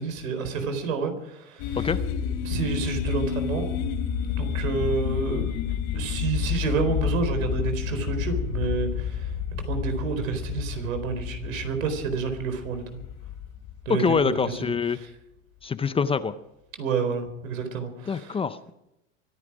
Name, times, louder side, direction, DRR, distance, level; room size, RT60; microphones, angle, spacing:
voice 1, 0.0-1.9 2.4-3.7 4.4-5.5 5.9-9.3 9.7-13.0 13.9-15.1 16.8-18.4, right 5 dB, 90° right, 8 dB, 4.3 m, -29 dB
sound 1, 1.6-14.5, left 8 dB, 50° left, 3.5 m, -30 dB
voice 2, 14.0-15.0 15.6-16.3 18.1-18.7, left 5 dB, 15° left, 13 dB, 0.6 m, -25 dB
24.5 x 11.0 x 5.1 m, 0.86 s
supercardioid pair, 120°, 39 cm